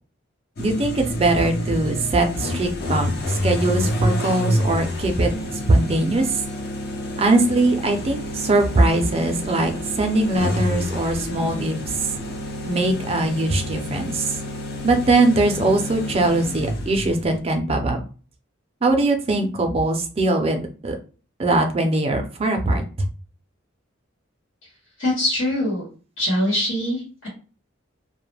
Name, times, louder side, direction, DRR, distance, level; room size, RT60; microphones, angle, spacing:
sound 1, 0.6-17.4, left 1 dB, 50° left, 0.6 m, -28 dB
voice 1, 0.6-3.1 3.4-5.3 5.7-6.2 7.2-9.7 10.0-11.7 12.6-14.3 14.8-18.0 18.8-21.0 21.4-22.8, right 2 dB, 30° right, 5 dB, 0.4 m, -21 dB
voice 2, 25.0-25.9 26.2-27.3, left 1 dB, 80° left, -4 dB, 1.2 m, -23 dB
2.2 x 2.1 x 3.2 m, 0.36 s
head